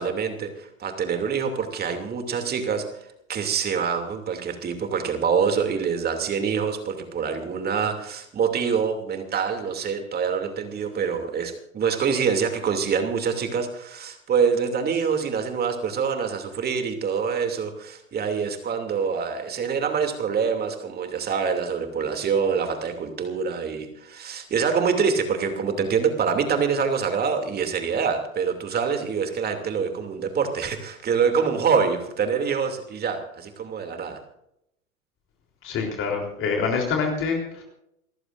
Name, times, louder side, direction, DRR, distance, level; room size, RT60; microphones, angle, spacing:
voice 1, 0.0-2.9 3.3-34.2, right 6 dB, 20° right, 5 dB, 2.7 m, -25 dB
voice 2, 35.6-37.6, left 5 dB, 30° left, 1 dB, 3.7 m, -26 dB
28.5 x 15.0 x 2.6 m, 0.79 s
hypercardioid pair, 105°, 42 cm